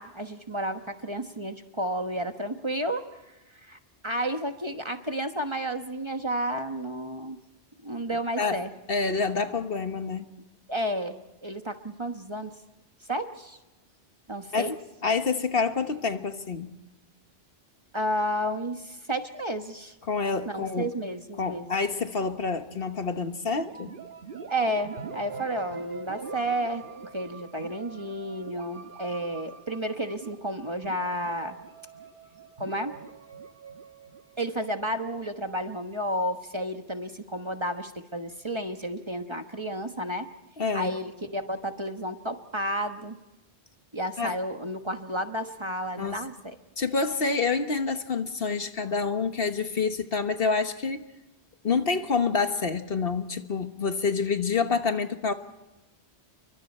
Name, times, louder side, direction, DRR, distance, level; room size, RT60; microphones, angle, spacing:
voice 1, 0.0-3.0 3.5-3.8 4.0-7.4 7.8-8.7 10.7-12.5 13.1-13.6 14.3-14.7 17.9-19.9 20.4-21.7 24.5-31.6 32.6-33.0 34.4-40.3 40.7-43.2 43.9-46.5, right 1 dB, 25° right, 6 dB, 1.2 m, -31 dB
voice 2, 8.9-10.3 14.5-14.7 15.0-16.7 20.1-20.9 21.4-23.9 40.6-40.9 44.2-44.3 46.0-46.2 46.8-51.0 51.6-55.3, left 4 dB, 60° left, 8 dB, 1.5 m, -27 dB
sound 1, 23.6-35.3, right 5 dB, 50° right, 1.3 m, -43 dB
29.5 x 24.0 x 4.4 m, 1.0 s
omnidirectional pair, 1.1 m